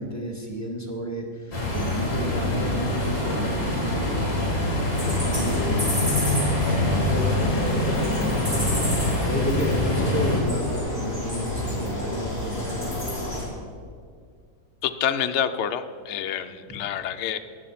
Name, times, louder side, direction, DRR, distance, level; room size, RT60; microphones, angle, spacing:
voice 1, 0.0-4.2 5.2-6.3 6.6-12.9, left 1 dB, 10° left, -1 dB, 1.6 m, -32 dB
sound 1, 1.5-10.4, left 1 dB, 45° left, 3.6 m, -25 dB
sound 2, 4.9-13.5, left 1 dB, 10° right, 4.3 m, -30 dB
voice 2, 14.8-17.4, left 8 dB, 80° left, 8 dB, 0.6 m, -27 dB
18.5 x 7.0 x 5.7 m, 2.1 s
omnidirectional pair, 1.9 m